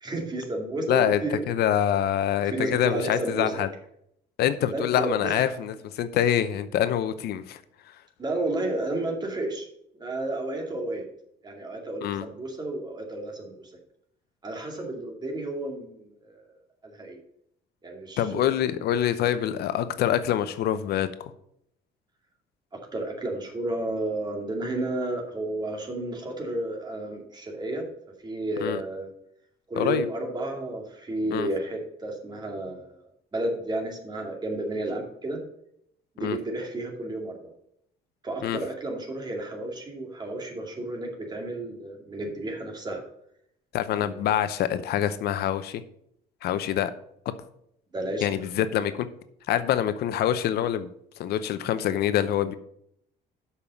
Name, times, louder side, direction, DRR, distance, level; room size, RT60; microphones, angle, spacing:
voice 1, 0.0-1.4 2.4-3.6 4.7-5.5 8.2-9.7 9.9-11.0 11.4-13.7 14.4-16.4 16.8-17.2 17.8-18.6 22.7-27.9 28.2-29.1 29.7-33.0 33.3-35.4 36.2-37.3 38.2-43.0 43.9-44.3 47.9-48.3, right 2 dB, 25° right, 1 dB, 2.4 m, -32 dB
voice 2, 0.9-1.2 1.5-3.7 4.4-7.6 12.0-12.2 18.2-21.1 28.6-28.8 29.8-30.1 31.3-31.5 36.2-36.4 38.4-38.6 43.7-45.8 46.4-46.9 48.2-49.1 49.5-50.9 51.2-52.5, left 10 dB, 70° left, 12 dB, 0.7 m, -25 dB
6.9 x 5.6 x 6.9 m, 0.73 s
cardioid pair, 110°, 17 cm